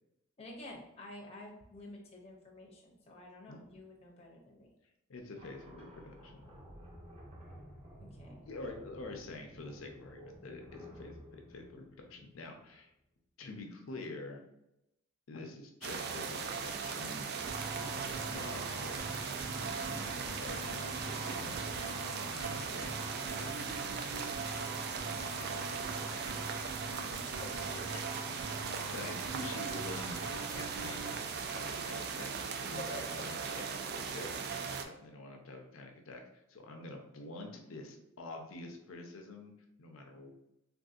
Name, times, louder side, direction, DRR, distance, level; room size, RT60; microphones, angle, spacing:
voice 1, 0.4-4.7 8.0-8.4 27.2-27.5 27.9-28.0, left 1 dB, 30° left, -2 dB, 0.6 m, -50 dB
voice 2, 5.1-6.4 8.3-12.9 13.4-14.4 15.3-17.3 17.8-19.2 19.4-21.7 22.3-24.4 24.9-25.6 26.1-26.9 28.9-34.3 34.8-36.2 36.5-39.5 39.8-40.3, left 2 dB, 75° left, 3 dB, 0.6 m, -47 dB
sound 1, 5.4-12.8, equal, 25° right, 0.7 m, -53 dB
sound 2, 15.8-34.9, right 6 dB, 50° right, 0.3 m, -38 dB
sound 3, 17.5-31.2, right 1 dB, 70° right, 0.8 m, -44 dB
3.5 x 2.6 x 2.4 m, 0.86 s
head